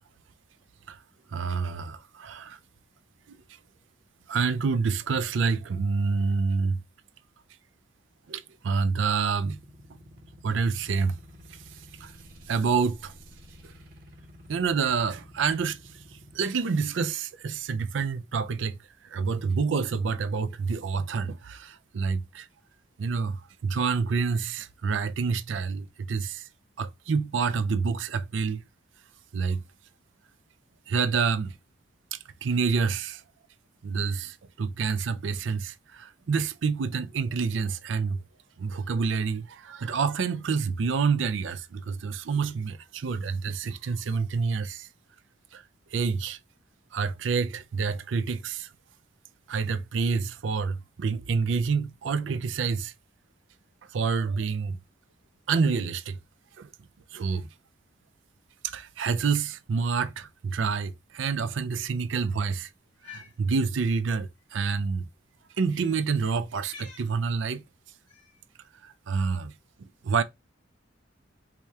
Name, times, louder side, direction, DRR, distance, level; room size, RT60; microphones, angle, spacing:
voice 1, 1.3-2.6 3.3-3.4 4.3-6.8 8.3-9.6 10.4-11.2 11.5-12.1 12.5-13.1 13.6-13.7 14.5-16.0 16.3-22.5 23.0-26.5 26.8-28.6 29.3-29.6 30.9-31.5 32.1-33.2 33.8-38.2 38.6-44.9 45.5-45.6 45.9-46.4 46.9-48.7 49.5-52.9 53.9-54.8 55.5-56.2 56.6-56.7 57.1-57.5 58.6-62.7 63.0-65.1 65.6-67.6 68.8-69.5 70.0-70.2, right 5 dB, 75° right, 0.5 m, -28 dB
sound 1, 9.5-16.4, equal, 50° right, 1.1 m, -51 dB
Cat, 62.9-63.4 64.4-64.6 65.7-66.0 66.6-67.1 68.1-68.4, left 5 dB, 60° left, 1.7 m, -48 dB
4.8 x 2.3 x 2.7 m
head